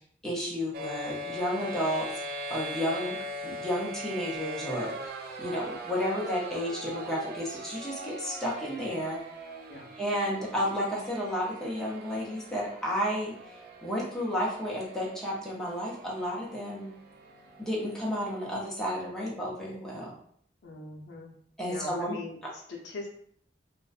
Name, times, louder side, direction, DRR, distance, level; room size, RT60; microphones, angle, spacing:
voice 1, 0.2-2.1 2.5-3.2 3.4-9.2 10.0-16.9 17.6-20.1 21.6-22.2, equal, 5° left, -6 dB, 0.5 m, -32 dB
sound 1, 0.7-18.5, right 1 dB, 55° right, 0.3 m, -41 dB
voice 2, 20.6-21.3 21.7-23.1, left 3 dB, 70° left, 0 dB, 0.5 m, -42 dB
2.4 x 2.1 x 2.4 m, 0.62 s
head